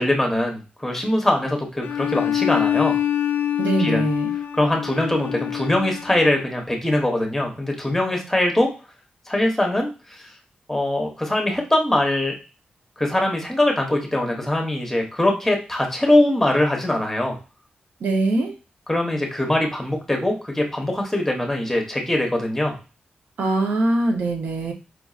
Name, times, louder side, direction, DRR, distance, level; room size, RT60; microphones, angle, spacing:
voice 1, 0.0-2.9 3.8-4.0 4.5-8.7 9.3-9.9 10.7-12.4 13.0-17.4 18.9-22.7, left 1 dB, 5° left, 1 dB, 0.8 m, -22 dB
Bowed string instrument, 1.8-6.5, left 11 dB, 85° left, 0.3 m, -25 dB
voice 2, 3.6-4.3 18.0-18.5 23.4-24.7, right 2 dB, 80° right, 2 dB, 0.9 m, -22 dB
4.6 x 2.6 x 2.4 m, 0.33 s
wide cardioid pair, 145°, 3 cm